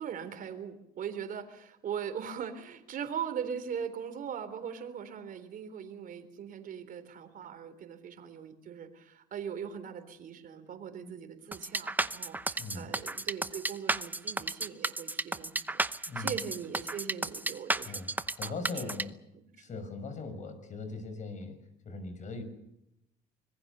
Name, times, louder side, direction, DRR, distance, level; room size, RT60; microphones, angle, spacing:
voice 1, 0.0-18.9 19.3-19.8, right 7 dB, 55° right, 10 dB, 3.7 m, -40 dB
sound 1, 11.5-19.0, right 2 dB, 10° right, 0.9 m, -32 dB
voice 2, 17.8-19.2 19.6-21.6 21.8-22.4, left 3 dB, 45° left, 9 dB, 6.3 m, -40 dB
25.5 x 21.5 x 6.9 m, 0.83 s
cardioid pair, 110°, 17 cm